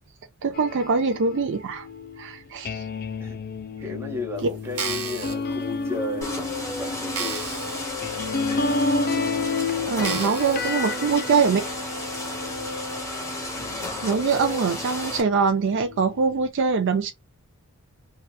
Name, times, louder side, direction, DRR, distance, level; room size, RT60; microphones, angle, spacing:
voice 1, 0.4-1.9 2.2-2.8 9.9-11.6 14.0-17.1, right 5 dB, 55° right, 0.4 m, -23 dB
sound 1, 0.5-13.1 13.6-16.5, left 3 dB, 45° left, 0.4 m, -31 dB
voice 2, 3.8-7.8, left 2 dB, 10° right, 0.9 m, -34 dB
sound 2, 4.6-5.3 6.0-6.1 6.6-6.7 7.1-7.8 8.3-8.4 9.1-9.2 10.0-10.7 11.3-11.4, right 6 dB, 80° right, 0.9 m, -32 dB
sound 3, 6.2-15.2, left 2 dB, 15° left, 0.9 m, -32 dB
2.8 x 2.3 x 2.2 m
head